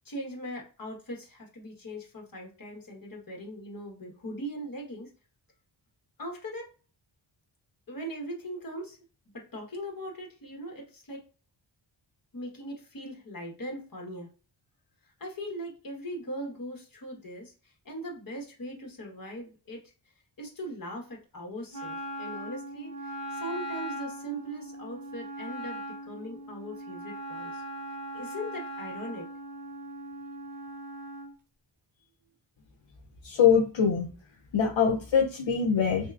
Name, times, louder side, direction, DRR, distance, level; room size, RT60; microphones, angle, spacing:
voice 1, 0.0-5.1 6.2-6.7 7.9-9.0 9.3-11.2 12.3-14.3 15.2-19.9 20.4-27.6 28.1-29.3, equal, 45° left, 0 dB, 1.2 m, -40 dB
Wind instrument woodwind instrument, 21.7-31.3, right 1 dB, 45° right, 0.7 m, -39 dB
voice 2, 33.2-34.1 34.5-36.1, left 7 dB, 70° left, 2 dB, 0.7 m, -23 dB
3.2 x 2.8 x 2.4 m, 0.35 s
wide cardioid pair, 100°, 47 cm